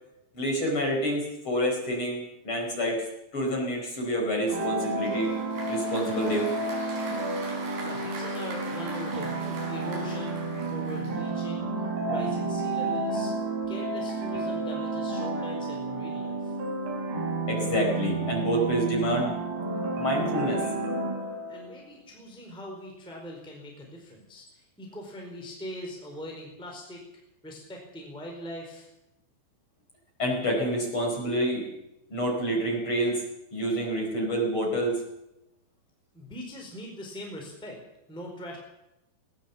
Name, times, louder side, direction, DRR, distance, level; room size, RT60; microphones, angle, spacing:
voice 1, 0.3-3.0 3.3-5.3 5.7-6.5 7.8-7.9 17.5-19.3 20.0-20.6 30.2-31.6 32.1-33.2 33.5-35.0, equal, 30° left, 0 dB, 5.2 m, -28 dB
sound 1, 4.5-21.8, right 3 dB, 70° right, 5.6 m, -31 dB
Applause, 4.5-11.6, right 3 dB, 85° right, 7.7 m, -41 dB
voice 2, 7.8-11.7 12.0-13.3 13.7-16.6 21.5-27.0 27.4-28.9 36.1-37.8 38.1-38.6, equal, ahead, 0 dB, 3.7 m, -41 dB
19.5 x 18.5 x 7.2 m, 0.89 s
omnidirectional pair, 5.3 m